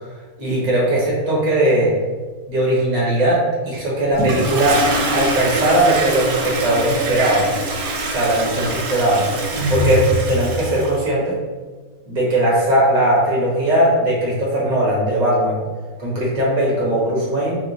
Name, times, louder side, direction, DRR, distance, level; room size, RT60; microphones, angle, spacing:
voice 1, 0.4-1.9 2.5-4.8 5.1-7.5 8.1-9.3 9.7-11.4 12.1-15.6 16.0-17.6, right 1 dB, 50° right, -5 dB, 0.5 m, -18 dB
Toilet flush, 4.1-11.0, right 1 dB, 70° right, 1.0 m, -23 dB
3.6 x 2.7 x 3.8 m, 1.4 s
omnidirectional pair, 2.4 m